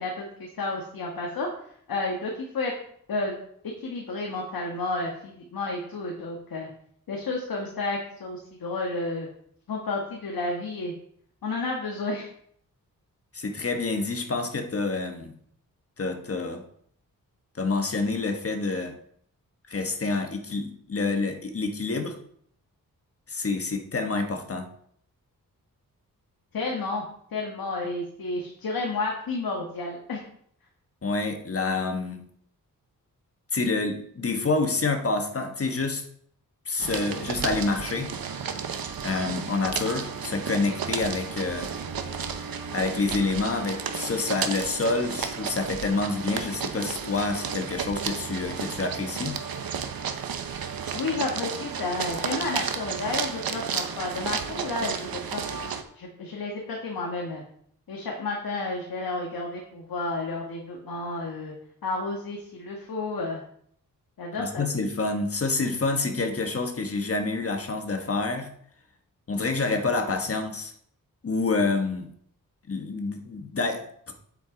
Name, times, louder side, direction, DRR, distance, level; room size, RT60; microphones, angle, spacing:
voice 1, 0.0-1.5 1.9-2.7 3.1-3.3 3.8-6.7 7.1-9.3 9.7-10.9 11.4-12.3 26.5-27.0 27.3-30.2 50.9-55.4 55.9-57.4 57.9-61.5 61.8-63.4 64.2-64.6, left 3 dB, 80° left, -1 dB, 1.8 m, -31 dB
voice 2, 13.3-15.4 16.0-16.6 17.6-19.0 19.7-22.2 23.3-24.7 31.0-32.2 33.5-36.0 36.6-38.1 39.0-41.7 42.7-49.4 64.3-68.5 69.3-70.7 71.2-72.1 72.7-74.1, left 3 dB, 40° left, 5 dB, 1.4 m, -28 dB
sound 1, 36.8-55.8, right 6 dB, 80° right, 1.0 m, -33 dB
9.1 x 7.8 x 4.0 m, 0.65 s
wide cardioid pair, 110°, 35 cm